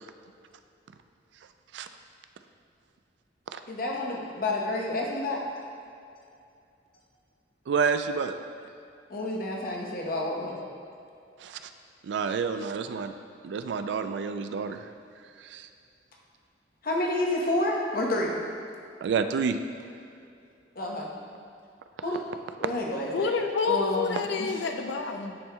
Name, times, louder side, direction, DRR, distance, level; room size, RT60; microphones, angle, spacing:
voice 1, 3.7-5.4 9.1-10.6 16.8-18.3 20.8-21.1 22.0-22.2 22.6-23.3 23.6-24.6, left 1 dB, 50° left, -2 dB, 0.9 m, -29 dB
voice 2, 7.7-8.3 11.4-11.6 12.0-13.1 13.4-14.8 15.4-15.7 19.0-19.6, right 5 dB, 70° right, 9 dB, 0.3 m, -29 dB
voice 3, 23.1-25.4, left 4 dB, 70° left, 5 dB, 0.4 m, -28 dB
10.5 x 4.4 x 2.2 m, 2.5 s
head